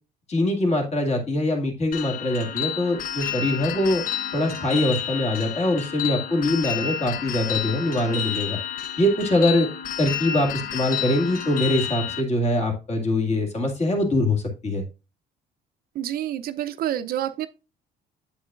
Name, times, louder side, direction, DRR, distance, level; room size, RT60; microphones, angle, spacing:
voice 1, 0.3-4.0 4.3-8.6 9.0-9.7 10.0-14.8, left 1 dB, 40° left, 2.1 m, -23 dB
sound 1, 1.9-12.2, left 10 dB, 55° left, 0.7 m, -30 dB
voice 2, 15.9-17.5, right 11 dB, 65° right, 0.6 m, -28 dB
8.1 x 7.3 x 2.4 m
cardioid pair, 110°, 17 cm